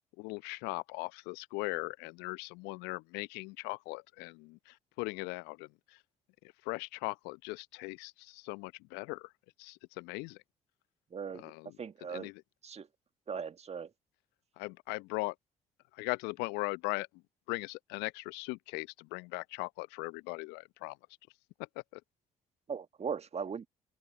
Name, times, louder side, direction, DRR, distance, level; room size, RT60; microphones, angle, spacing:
voice 1, 0.2-6.0 6.4-9.3 9.6-10.4 11.3-11.7 12.1-12.4 14.6-15.3 15.9-17.1 17.5-21.0 21.9-22.0, left 26 dB, 70° left, 0.8 m, -39 dB
voice 2, 11.1-11.5 11.8-12.3 12.6-12.9 13.3-13.9 22.7-23.7, right 6 dB, 35° right, 1.7 m, -39 dB
figure-of-eight pair, 50°, 18 cm